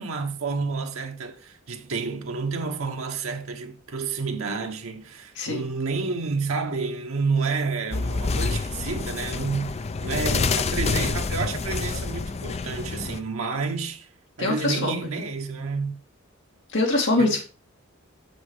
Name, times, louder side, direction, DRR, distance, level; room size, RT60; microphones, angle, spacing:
voice 1, 0.0-14.1 14.4-16.0 17.2-17.4, right 4 dB, 85° right, 1.0 m, -30 dB
voice 2, 5.4-5.7 10.4-10.5 14.4-15.2 16.7-17.4, left 2 dB, 60° left, 2.8 m, -24 dB
sound 1, 7.9-13.2, left 4 dB, 30° left, 0.4 m, -27 dB
7.4 x 6.1 x 4.9 m
head